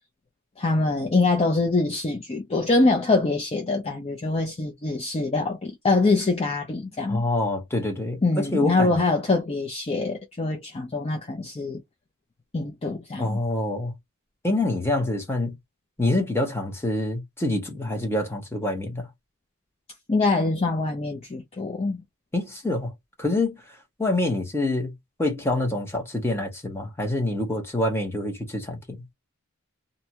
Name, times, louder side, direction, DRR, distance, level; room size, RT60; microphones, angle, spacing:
voice 1, 0.6-7.2 8.2-11.8 12.5-13.4 20.1-22.0, left 3 dB, 25° left, 0.5 m, -24 dB
voice 2, 7.1-8.9 13.2-13.9 14.4-15.5 16.0-19.1 22.3-22.9 23.2-23.6 24.0-24.9 25.2-29.0, left 2 dB, 10° left, 1.0 m, -26 dB
2.6 x 2.2 x 2.8 m
head